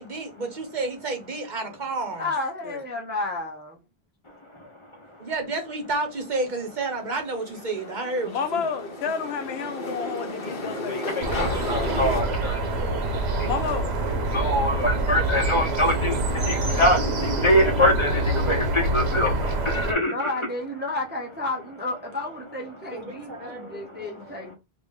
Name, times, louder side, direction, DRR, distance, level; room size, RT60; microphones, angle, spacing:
voice 1, 0.0-2.2 5.2-8.7 10.0-10.1 11.8-12.1 12.4-13.4 14.2-14.4 15.2-16.7 22.9-24.5, right 3 dB, 50° right, 0.9 m, -32 dB
voice 2, 2.2-3.8 20.0-24.5, left 2 dB, 15° right, 0.5 m, -31 dB
sound 1, 6.8-12.2, left 2 dB, 50° left, 1.0 m, -33 dB
voice 3, 8.2-11.4 13.4-13.9, left 6 dB, 80° left, 0.8 m, -31 dB
voice 4, 10.9-11.3 11.7-12.6 13.4-13.5 14.3-20.1 23.5-23.9, equal, 30° left, 0.9 m, -24 dB
sound 2, 11.2-19.9, right 2 dB, 85° right, 1.0 m, -25 dB
3.2 x 2.5 x 3.5 m
omnidirectional pair, 1.1 m